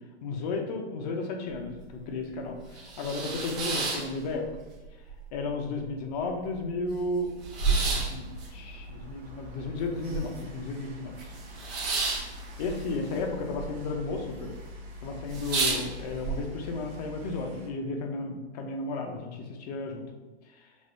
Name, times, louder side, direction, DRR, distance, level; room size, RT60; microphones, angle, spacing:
voice 1, 0.2-4.5 5.3-7.3 7.7-11.3 12.6-14.5 15.0-20.0 20.4-20.7, left 3 dB, 35° left, 3 dB, 0.7 m, -34 dB
sound 1, 1.5-1.6 2.0-2.1 2.6-4.8 5.1-5.8 6.2-6.3 6.4-10.6 10.9-13.7 13.9-14.5 14.8-14.9 15.2-16.3, right 4 dB, 35° right, 1.0 m, -31 dB
sound 2, 7.4-17.7, left 1 dB, 65° right, 1.2 m, -45 dB
5.2 x 3.5 x 2.6 m, 1.2 s
hypercardioid pair, 150°, 35 cm